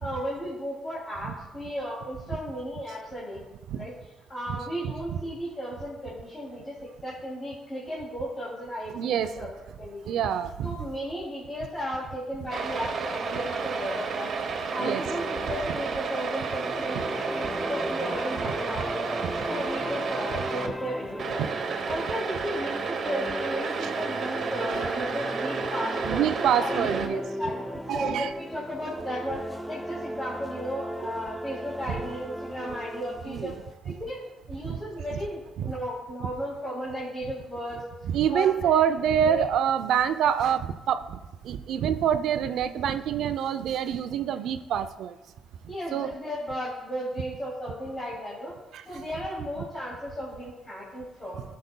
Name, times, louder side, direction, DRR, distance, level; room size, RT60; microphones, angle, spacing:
voice 1, 0.0-3.4 3.7-3.9 4.3-10.2 10.6-14.3 14.7-19.0 19.4-21.5 21.8-26.3 26.6-33.6 33.8-34.2 34.5-37.8 38.3-38.8 39.1-39.4 45.7-48.5 48.9-51.4, equal, 30° left, -7 dB, 2.5 m, -35 dB
voice 2, 4.8-5.2 8.9-9.3 10.1-10.8 14.8-15.0 19.2-19.3 23.8-23.9 24.7-24.9 26.0-27.2 27.9-28.3 33.3-33.5 34.6-34.8 35.1-35.2 35.6-35.7 38.1-41.2 41.4-45.1 45.9-46.1 48.7-48.8, right 9 dB, 80° right, 10 dB, 0.4 m, -26 dB
sound 1, 12.5-20.7 21.2-27.1, right 5 dB, 60° right, 0.9 m, -32 dB
sound 2, 14.8-33.7, equal, ahead, 0.4 m, -37 dB
17.5 x 6.6 x 2.2 m, 1.0 s
cardioid pair, 90°, 0 cm